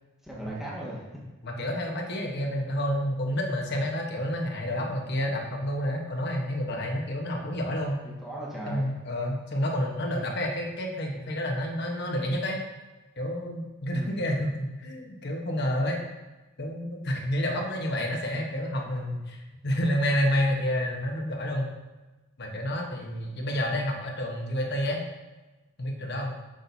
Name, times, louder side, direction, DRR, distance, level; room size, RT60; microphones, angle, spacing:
voice 1, 0.2-1.0 2.4-2.5 8.0-8.9 13.9-14.2 23.0-23.5, right 1 dB, ahead, -6 dB, 1.6 m, -38 dB
voice 2, 1.4-8.0 8.7-12.6 13.2-14.5 14.8-16.0 16.6-21.7 22.4-25.0 25.8-26.3, equal, 55° left, 1 dB, 1.1 m, -29 dB
8.2 x 6.4 x 2.7 m, 1.1 s
head